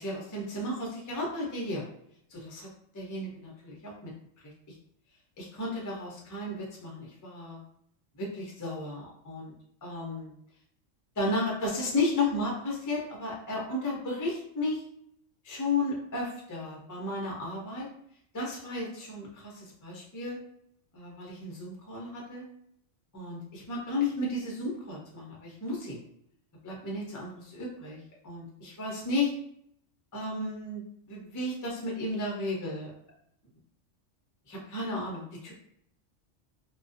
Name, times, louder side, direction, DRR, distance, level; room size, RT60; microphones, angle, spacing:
voice 1, 0.0-1.9 2.3-2.7 2.9-3.9 4.7-4.8 5.4-7.6 8.2-9.5 9.8-10.3 11.2-14.8 15.4-17.9 18.3-20.4 20.9-22.4 23.1-26.0 26.6-29.4 30.1-32.9 34.5-35.5, left 2 dB, 25° left, -3 dB, 0.4 m, -33 dB
2.4 x 2.2 x 2.5 m, 0.70 s
omnidirectional pair, 1.3 m